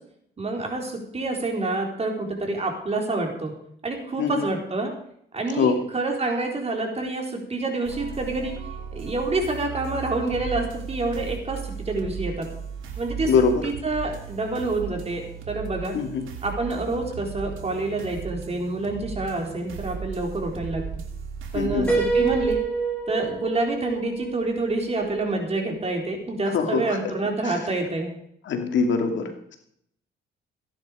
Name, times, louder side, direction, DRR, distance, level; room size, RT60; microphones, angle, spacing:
voice 1, 0.4-3.5 3.8-4.9 5.3-8.5 8.9-12.5 13.0-13.3 13.6-16.0 16.4-20.9 21.5-22.6 23.1-28.1, right 2 dB, 30° right, 2 dB, 4.1 m, -27 dB
sound 1, 7.8-22.6, right 6 dB, 85° right, 2.7 m, -36 dB
voice 2, 13.2-13.7 15.9-16.3 21.5-21.9 26.5-27.1 27.4-27.6 28.4-29.6, left 5 dB, 70° left, 4 dB, 2.7 m, -23 dB
Piano, 21.9-25.6, right 4 dB, 5° left, 5.4 m, -27 dB
16.5 x 10.5 x 5.2 m, 0.68 s
cardioid pair, 90°, 20 cm